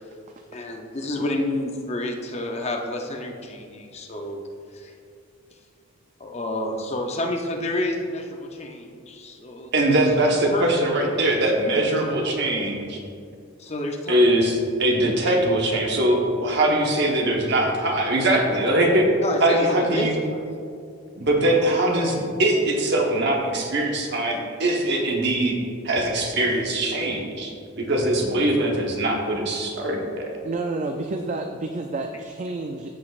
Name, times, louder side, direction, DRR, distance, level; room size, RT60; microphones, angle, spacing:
voice 1, 0.5-4.4 4.7-4.9 6.2-9.7 10.5-10.7 13.6-14.2 19.2-20.5, left 1 dB, 30° left, 2 dB, 0.6 m, -29 dB
voice 2, 9.7-13.0 14.1-19.1 19.4-20.1 21.2-25.5 25.8-30.4, right 1 dB, 50° right, 1 dB, 1.1 m, -22 dB
voice 3, 30.4-33.0, right 2 dB, 35° right, 4 dB, 0.3 m, -30 dB
14.0 x 5.2 x 2.4 m, 2.4 s
head